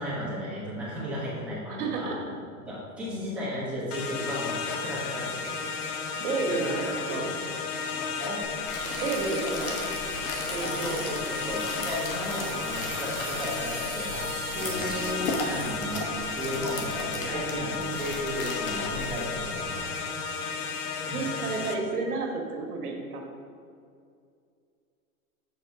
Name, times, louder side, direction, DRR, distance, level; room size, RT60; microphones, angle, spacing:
voice 1, 0.0-2.2 2.6-5.6 6.5-7.2 7.9-8.4 10.6-16.1 16.4-19.9 21.0-21.5, equal, 5° right, -9 dB, 1.1 m, -35 dB
voice 2, 1.7-2.2 6.2-7.3 9.0-9.8 10.5-11.0 14.5-15.3 17.2-18.0 21.1-23.2, right 3 dB, 90° right, 1 dB, 1.5 m, -32 dB
sound 1, 3.9-21.8, left 5 dB, 90° left, 0.8 m, -33 dB
sound 2, 8.4-19.8, left 2 dB, 65° left, 1.3 m, -37 dB
sound 3, 8.9-15.8, right 5 dB, 60° right, 1.6 m, -42 dB
7.4 x 3.9 x 4.6 m, 2.4 s
supercardioid pair, 170°, 44 cm